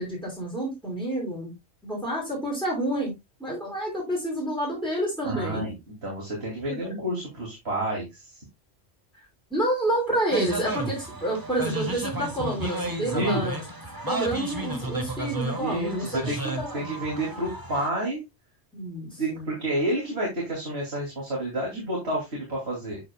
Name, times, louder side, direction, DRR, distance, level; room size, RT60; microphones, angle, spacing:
voice 1, 0.0-1.5 1.8-3.1 3.4-5.6 6.7-6.8 9.5-13.6 14.1-17.0 18.7-19.5, right 1 dB, ahead, -3 dB, 5.0 m, -29 dB
voice 2, 5.2-5.7 6.0-8.3 13.1-13.4 15.6-18.2 19.2-23.0, right 1 dB, 65° right, -3 dB, 3.1 m, -29 dB
sound 1, 10.3-17.9, right 2 dB, 20° right, 1.0 m, -33 dB
8.7 x 7.3 x 2.3 m, 0.21 s
omnidirectional pair, 1.2 m